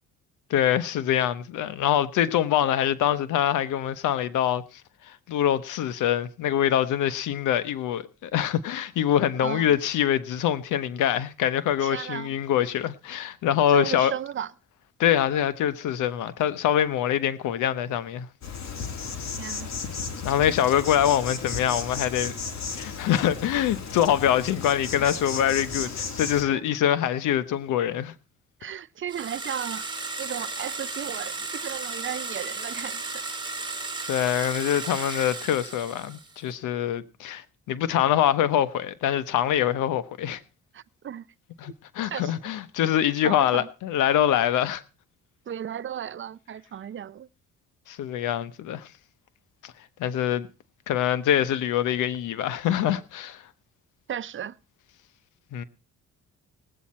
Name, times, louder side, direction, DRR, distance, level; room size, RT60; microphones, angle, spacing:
voice 1, 0.5-4.6 5.1-14.1 15.0-18.3 20.2-22.3 22.7-28.1 34.1-40.4 41.6-44.8 47.9-48.9 49.6-49.7 50.0-50.5 50.9-53.4 55.5-55.6, left 10 dB, 85° left, 1.0 m, -24 dB
voice 2, 9.4-9.7 11.8-12.3 13.7-14.5 19.4-19.7 25.0-25.1 26.5-26.6 28.6-29.9 30.2-33.2 40.7-41.2 42.0-42.5 43.2-43.7 45.5-47.3 54.1-54.6, right 9 dB, 40° right, 0.6 m, -35 dB
Insect, 18.4-26.4, left 5 dB, 65° left, 2.5 m, -34 dB
sound 1, 29.1-36.4, right 3 dB, 15° right, 3.3 m, -34 dB
18.5 x 8.5 x 4.3 m
cardioid pair, 90°, 30 cm